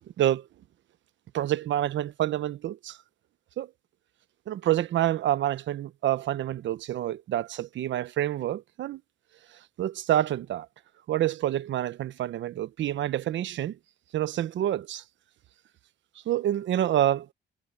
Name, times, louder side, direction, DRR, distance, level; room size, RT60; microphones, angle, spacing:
voice 1, 1.3-3.0 3.6-3.7 4.5-9.0 9.8-10.7 11.1-13.8 14.1-15.0 16.3-17.3, right 12 dB, 70° right, 0.9 m, -27 dB
cardioid pair, 90°, 20 cm